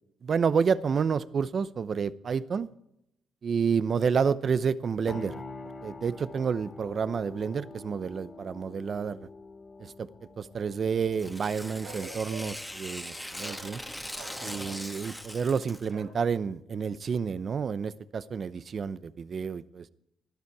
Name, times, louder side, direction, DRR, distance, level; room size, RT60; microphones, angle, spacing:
voice 1, 0.2-2.7 3.4-5.4 5.8-9.2 9.8-10.1 10.4-13.8 14.4-19.9, right 6 dB, 50° right, 16 dB, 0.8 m, -29 dB
sound 1, 5.1-14.8, left 3 dB, 35° left, 2.8 m, -47 dB
Tearing, 11.1-15.9, left 1 dB, 5° left, 1.7 m, -40 dB
Bark, 11.8-12.7 13.4-13.7 14.1-14.9 15.9-16.2, right 5 dB, 80° right, 4.1 m, -45 dB
19.0 x 12.5 x 4.8 m, 0.80 s
cardioid pair, 90°, 0 cm